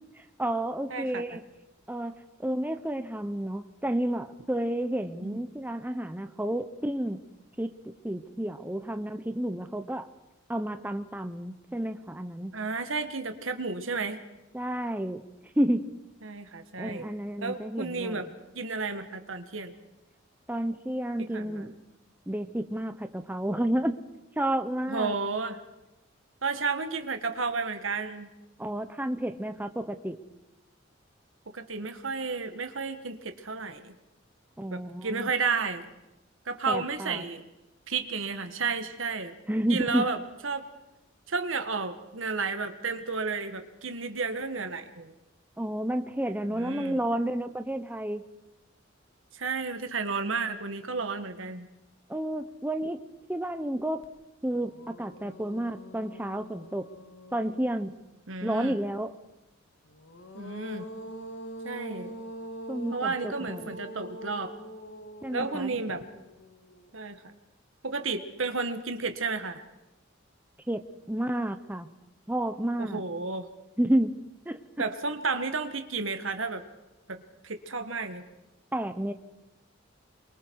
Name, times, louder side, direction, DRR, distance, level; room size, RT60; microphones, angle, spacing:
voice 1, 0.4-1.4 1.9-2.1 2.4-7.2 7.6-7.7 8.0-10.1 10.5-12.5 14.5-15.2 15.6-15.9 16.8-18.3 20.5-21.8 22.3-24.0 24.4-25.1 28.6-30.2 34.6-35.3 36.7-37.2 39.5-40.1 45.6-48.2 52.1-53.0 53.3-54.1 54.4-56.9 57.3-57.9 58.4-59.1 62.7-63.8 65.2-65.8 70.7-70.8 71.1-71.9 72.3-73.0 73.8-74.9 78.7-79.1, right 1 dB, 10° right, 8 dB, 0.9 m, -31 dB
voice 2, 0.9-1.2 5.2-5.4 12.5-14.2 16.2-17.1 17.4-18.3 18.5-19.7 21.2-21.7 24.9-25.6 26.4-28.3 31.5-33.9 34.7-35.9 36.4-37.4 37.9-39.3 39.7-40.6 41.3-45.1 46.5-47.0 49.3-51.7 58.3-58.8 60.3-60.9 61.6-62.2 62.9-64.5 65.3-66.0 66.9-67.3 67.8-69.6 72.8-73.5 74.8-76.6 77.1-78.3, right 4 dB, 80° right, 7 dB, 1.7 m, -32 dB
sound 1, 54.0-54.1 54.5-58.2 59.8-67.1, equal, 65° left, 1.9 m, -44 dB
29.0 x 23.0 x 4.8 m, 0.98 s
head